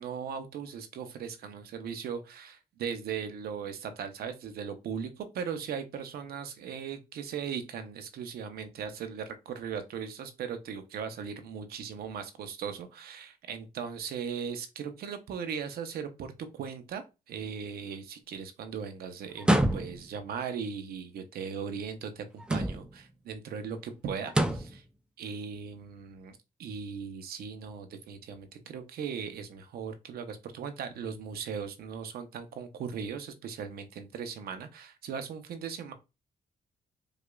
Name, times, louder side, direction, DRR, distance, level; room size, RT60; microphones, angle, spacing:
voice 1, 0.0-24.8 25.2-35.9, right 7 dB, 80° right, 0.6 m, -38 dB
sound 1, 19.4-20.2 22.4-23.0 24.3-24.8, right 1 dB, 5° right, 0.3 m, -27 dB
4.9 x 2.3 x 2.2 m
cardioid pair, 110°, 16 cm